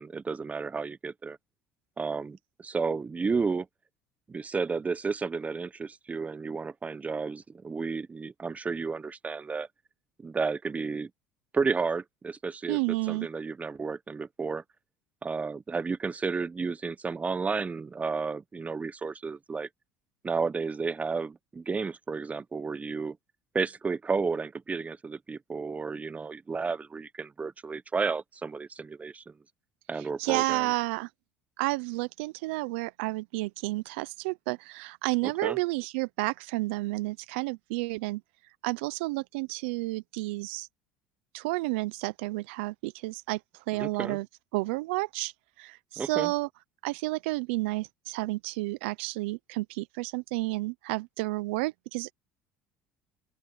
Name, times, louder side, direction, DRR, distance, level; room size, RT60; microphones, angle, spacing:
voice 1, 0.0-1.4 2.0-3.7 4.3-9.7 10.2-11.1 11.5-14.6 15.2-19.7 20.2-23.2 23.5-29.3 29.9-30.7 35.2-35.6 43.7-44.2 46.0-46.3, right 4 dB, 25° right, 1.1 m, -32 dB
voice 2, 12.7-13.3 30.2-31.1 31.6-38.2 38.6-40.7 41.3-43.4 43.7-44.3 44.5-45.3 45.6-46.5 46.8-52.1, right 23 dB, 80° right, 0.8 m, -31 dB
open air
hypercardioid pair, 75°, 6 cm